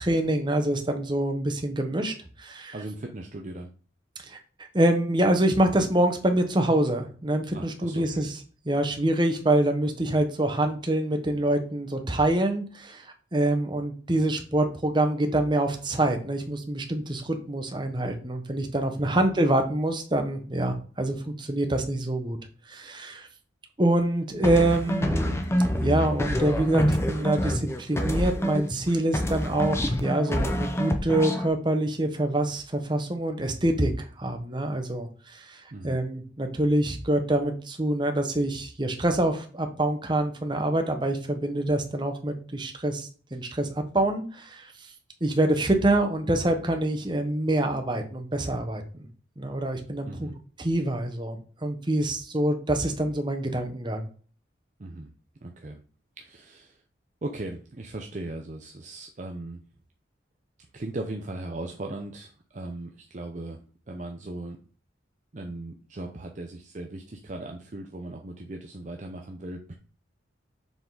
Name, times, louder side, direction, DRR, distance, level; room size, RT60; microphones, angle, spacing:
voice 1, 0.0-2.7 4.3-4.4 4.7-8.3 8.7-22.4 22.7-23.3 23.8-25.4 25.8-43.7 43.9-44.7 45.2-48.8 49.4-50.3 50.6-54.1, right 1 dB, 25° right, 5 dB, 1.0 m, -26 dB
voice 2, 2.7-3.7 7.5-8.2 19.0-19.2 35.7-36.0 50.0-50.4 54.8-55.1 55.4-55.8 56.2-56.8 57.2-59.6 60.7-64.6 65.3-69.7, right 2 dB, 40° right, 2 dB, 0.6 m, -38 dB
sound 1, 24.4-28.9 29.1-31.5, equal, 15° left, 0.7 m, -26 dB
7.0 x 3.7 x 4.0 m, 0.40 s
head